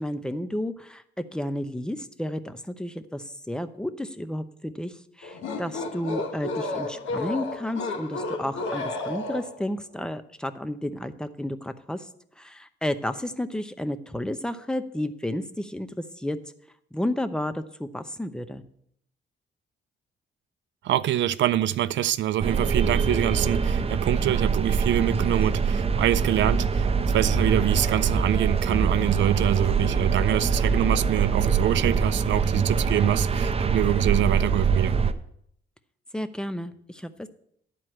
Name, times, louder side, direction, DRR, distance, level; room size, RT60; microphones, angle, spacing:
voice 1, 0.0-12.1 12.4-16.4 16.9-18.6 36.1-37.3, left 1 dB, 5° left, 0.8 m, -32 dB
sound 1, 5.2-9.7, left 3 dB, 75° left, 1.4 m, -32 dB
voice 2, 20.8-35.0, right 12 dB, 70° right, 0.5 m, -25 dB
sound 2, 22.4-35.1, right 5 dB, 30° right, 0.8 m, -24 dB
11.0 x 4.6 x 7.6 m
cardioid pair, 90°, 20 cm